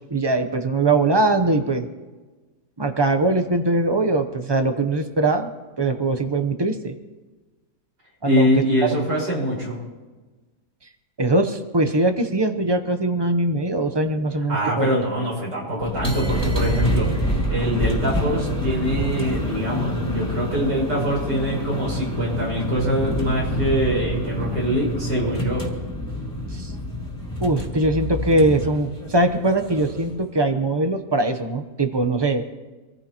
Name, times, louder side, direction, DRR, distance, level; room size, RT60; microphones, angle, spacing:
voice 1, 0.1-1.9 2.8-5.5 5.8-6.9 8.2-8.5 11.2-15.0 26.5-26.7 27.4-32.4, right 2 dB, 30° right, 7 dB, 0.4 m, -21 dB
voice 2, 8.2-9.8 14.5-25.6, equal, 75° right, -4 dB, 5.8 m, -24 dB
sound 1, 15.8-30.2, equal, 5° left, 2.8 m, -27 dB
25.5 x 15.0 x 3.0 m, 1.3 s
omnidirectional pair, 1.8 m